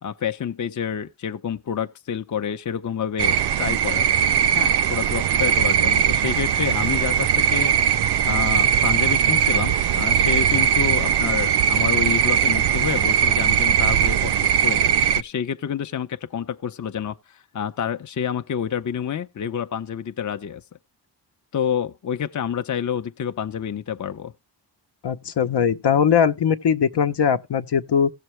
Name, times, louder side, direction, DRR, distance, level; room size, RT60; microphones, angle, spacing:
voice 1, 0.0-4.1 4.6-7.7 8.2-20.6 21.5-24.3, left 8 dB, 45° left, 0.6 m, -28 dB
sound 1, 3.2-15.2, right 9 dB, 70° right, 0.5 m, -20 dB
voice 2, 25.0-28.1, left 7 dB, 70° left, 0.9 m, -20 dB
16.5 x 6.8 x 3.1 m
cardioid pair, 80°, 42 cm